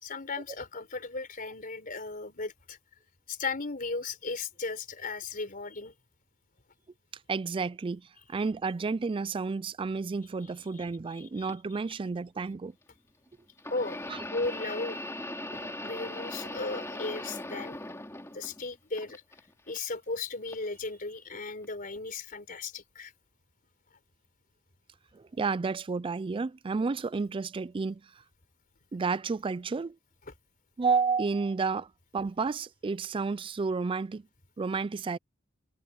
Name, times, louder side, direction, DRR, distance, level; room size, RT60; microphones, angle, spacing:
voice 1, 0.0-2.8 3.3-5.9 10.7-10.8 11.1-11.5 13.7-14.0 14.3-15.0 15.8-17.8 18.3-19.2 19.7-23.1, left 3 dB, 45° left, 4.0 m, -36 dB
voice 2, 7.3-12.7 14.1-14.2 25.1-28.0 28.9-30.0 30.8-34.3 34.6-35.2, right 4 dB, 25° right, 0.3 m, -31 dB
sound 1, 11.5-11.6 13.6-18.6 19.0-19.8 20.5-20.7 21.6-21.7, left 1 dB, 15° left, 2.6 m, -39 dB
head